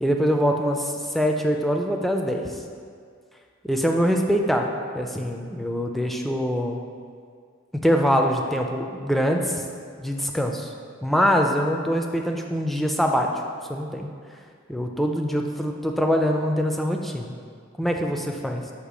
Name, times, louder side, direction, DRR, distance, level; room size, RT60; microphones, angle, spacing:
voice 1, 0.0-2.6 3.6-6.8 7.7-9.6 10.0-10.7 11.0-13.3 13.7-14.1 14.7-17.3 17.8-18.7, equal, ahead, 2 dB, 0.3 m, -24 dB
6.4 x 2.9 x 5.0 m, 2.1 s
head